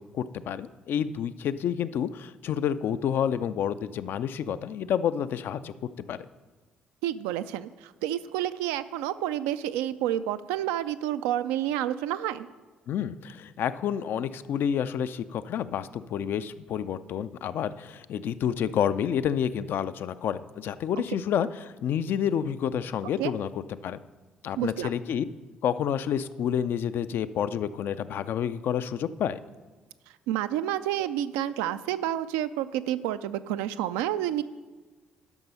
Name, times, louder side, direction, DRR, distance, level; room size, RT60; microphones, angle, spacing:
voice 1, 0.0-5.7 6.1-6.3 12.9-24.0 24.4-25.2 25.6-29.4, left 9 dB, 60° left, 13 dB, 0.4 m, -29 dB
voice 2, 7.0-12.5 23.2-23.3 24.6-24.9 30.3-34.4, right 12 dB, 80° right, 12 dB, 0.4 m, -29 dB
11.0 x 6.1 x 5.5 m, 1.3 s
hypercardioid pair, 45°, 4 cm